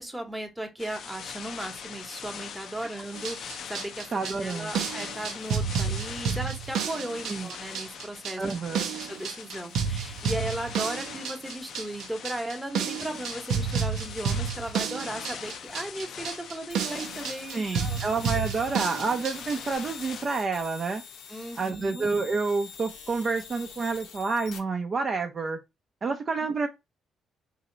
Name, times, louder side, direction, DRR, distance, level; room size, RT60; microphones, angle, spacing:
voice 1, 0.0-4.1 4.4-8.4 9.0-18.0 21.3-22.0, right 1 dB, 5° right, 1.0 m, -36 dB
sound 1, 0.8-20.3, left 7 dB, 65° left, 0.5 m, -42 dB
sound 2, 3.2-19.6, right 6 dB, 80° right, 0.7 m, -31 dB
voice 2, 4.1-4.9 7.3-7.5 8.4-8.9 17.5-21.0 21.6-25.6 26.0-26.7, right 4 dB, 40° right, 0.6 m, -29 dB
sound 3, 16.7-24.6, left 7 dB, 85° left, 0.9 m, -45 dB
3.2 x 2.8 x 3.8 m
cardioid pair, 90°, 0 cm